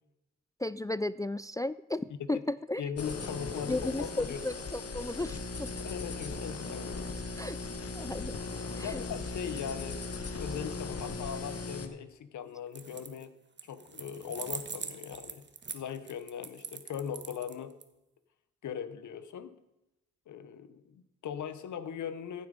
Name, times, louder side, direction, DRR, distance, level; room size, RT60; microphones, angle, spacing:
voice 1, 0.6-2.8 3.7-5.7 7.4-7.6 7.9-8.4 8.8-9.0, left 2 dB, 10° left, 16 dB, 0.3 m, -34 dB
voice 2, 2.8-4.4 5.8-7.1 8.8-13.4 13.6-15.5 15.7-17.8 18.6-19.5 20.3-22.5, left 8 dB, 90° left, 13 dB, 1.0 m, -39 dB
sound 1, 3.0-11.9, left 3 dB, 55° left, 1.4 m, -38 dB
sound 2, 12.7-13.2 13.6-17.8, right 5 dB, 40° right, 1.2 m, -42 dB
14.5 x 7.9 x 5.2 m, 0.91 s
cardioid pair, 75°, 29 cm